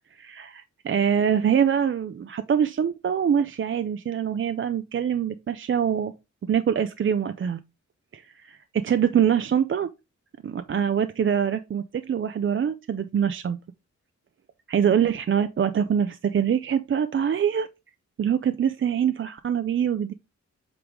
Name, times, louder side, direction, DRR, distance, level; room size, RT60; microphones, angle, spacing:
voice 1, 0.1-6.1 6.4-7.6 8.1-8.2 8.8-9.9 10.4-13.6 14.7-17.7 18.2-20.1, right 8 dB, 45° right, 0.4 m, -24 dB
7.9 x 3.7 x 3.5 m
wide cardioid pair, 140°, 29 cm